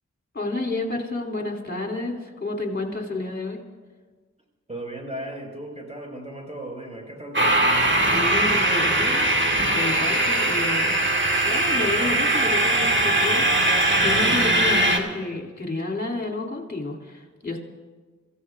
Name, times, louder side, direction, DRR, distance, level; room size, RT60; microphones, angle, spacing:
voice 1, 0.3-3.6 8.1-10.9 11.4-17.6, left 2 dB, 35° left, 1 dB, 2.9 m, -30 dB
voice 2, 4.7-7.7, right 1 dB, 20° right, 0 dB, 5.3 m, -36 dB
sound 1, 7.3-15.0, right 1 dB, 40° right, 2.0 m, -20 dB
28.0 x 15.5 x 2.5 m, 1.4 s
cardioid pair, 45°, 29 cm